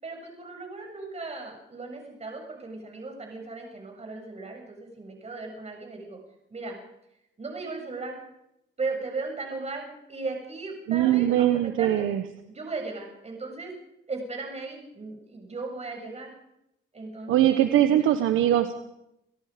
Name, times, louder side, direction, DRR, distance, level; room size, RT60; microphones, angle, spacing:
voice 1, 0.0-6.2 6.5-6.8 7.4-8.2 8.8-12.1 12.5-13.7 14.1-16.3 16.9-17.7, right 3 dB, 35° right, 2 dB, 7.4 m, -37 dB
voice 2, 10.9-12.2 17.3-18.7, right 12 dB, 85° right, 8 dB, 1.3 m, -21 dB
29.5 x 18.0 x 5.2 m, 0.82 s
cardioid pair, 90°, 20 cm